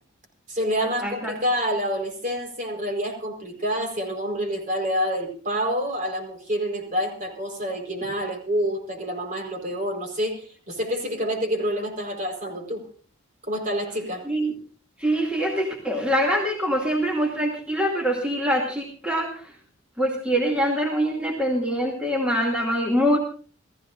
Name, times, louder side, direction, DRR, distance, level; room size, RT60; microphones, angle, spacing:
voice 1, 0.5-12.8 13.4-14.2, equal, 35° right, 4 dB, 4.6 m, -27 dB
voice 2, 1.0-1.4 14.3-14.5 15.0-19.5 20.0-23.2, equal, 5° right, -1 dB, 2.5 m, -24 dB
29.5 x 15.0 x 2.6 m, 0.41 s
head